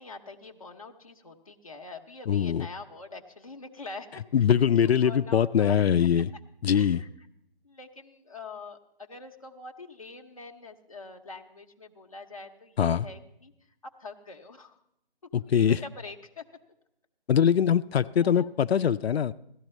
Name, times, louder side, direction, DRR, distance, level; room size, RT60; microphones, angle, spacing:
voice 1, 0.0-4.5 4.8-6.1 6.7-7.1 7.6-13.5 13.8-14.8 15.4-16.4 18.2-18.5, left 3 dB, 35° left, 2 dB, 0.8 m, -44 dB
voice 2, 2.3-2.7 4.3-6.3 6.6-7.0 12.8-13.1 15.3-15.8 17.3-19.3, left 8 dB, 90° left, 12 dB, 0.5 m, -22 dB
17.0 x 13.5 x 3.1 m, 0.77 s
hypercardioid pair, 180°, 30 cm